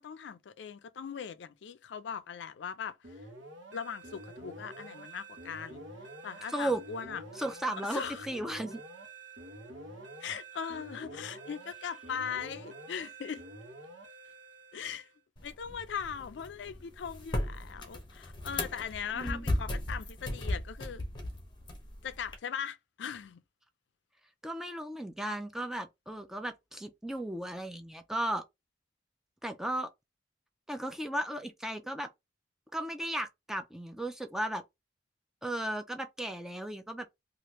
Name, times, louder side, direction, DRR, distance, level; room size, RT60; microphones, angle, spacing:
voice 1, 0.0-3.2 3.7-5.8 6.2-7.2 7.9-8.3 10.2-13.4 14.7-15.1 15.4-21.0 22.0-23.4, left 7 dB, 70° left, 0.4 m, -39 dB
sound 1, 3.0-15.2, right 2 dB, 85° right, 0.9 m, -48 dB
voice 2, 6.5-6.8 7.4-8.8 19.1-19.5 24.4-28.4 29.4-29.9 30.7-32.1 32.7-34.6 35.4-37.0, right 1 dB, 5° right, 0.4 m, -35 dB
sound 2, 15.4-22.4, left 1 dB, 25° left, 0.8 m, -37 dB
3.2 x 2.4 x 3.0 m
head